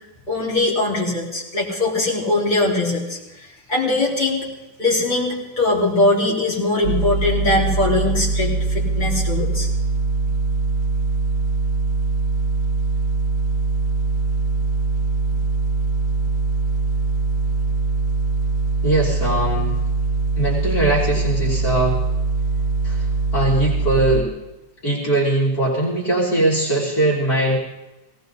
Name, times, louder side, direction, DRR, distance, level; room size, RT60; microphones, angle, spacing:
voice 1, 0.3-4.5 4.8-9.7, left 2 dB, 25° left, -6 dB, 4.3 m, -21 dB
sound 1, 6.8-24.2, right 2 dB, 85° right, 1.4 m, -22 dB
voice 2, 18.8-19.7 20.4-22.0 22.8-23.1 23.3-24.3 24.8-27.6, right 1 dB, 65° left, -4 dB, 3.6 m, -20 dB
18.5 x 18.0 x 4.0 m, 1.0 s
omnidirectional pair, 1.8 m